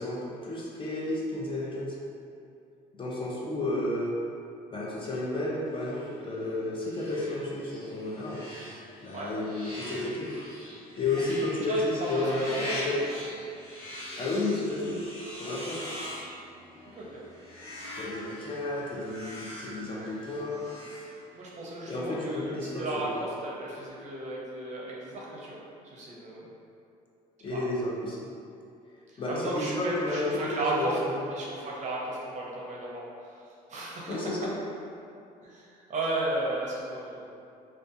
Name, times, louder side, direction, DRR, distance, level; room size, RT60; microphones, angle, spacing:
voice 1, 0.0-2.0 2.9-4.2 4.7-8.4 9.0-10.3 11.0-13.0 14.2-15.0 15.4-15.8 18.0-20.7 21.9-23.0 27.4-28.2 29.2-31.2 34.1-34.5, left 2 dB, 30° left, -4 dB, 0.4 m, -32 dB
sound 1, 5.7-21.6, left 1 dB, 55° left, 1.5 m, -42 dB
voice 2, 11.7-12.2 12.6-12.9 15.5-15.7 16.9-17.2 21.3-25.6 25.8-26.5 27.5-27.6 29.1-31.0 31.3-33.4 33.7-34.3 35.4-37.3, right 2 dB, 45° right, -5 dB, 0.6 m, -34 dB
2.5 x 2.3 x 2.4 m, 2.6 s
cardioid pair, 110°, 17 cm